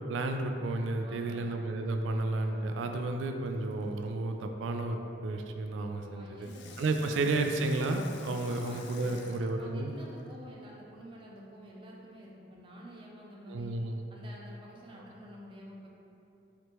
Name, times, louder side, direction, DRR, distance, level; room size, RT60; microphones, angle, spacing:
voice 1, 0.1-6.5 6.8-9.9 13.5-14.1, right 2 dB, 85° right, 5 dB, 0.3 m, -32 dB
voice 2, 1.0-1.5 6.0-7.6 8.4-13.7 14.1-15.9, equal, 25° right, -3 dB, 0.5 m, -49 dB
sound 1, 1.4-2.7 4.9-6.5, left 2 dB, 20° left, 1.0 m, -57 dB
Water tap faucet / Sink (filling or washing), 3.4-4.1 6.4-10.3 11.0-11.1, left 6 dB, 65° left, 0.3 m, -52 dB
4.9 x 3.0 x 3.0 m, 2.7 s
head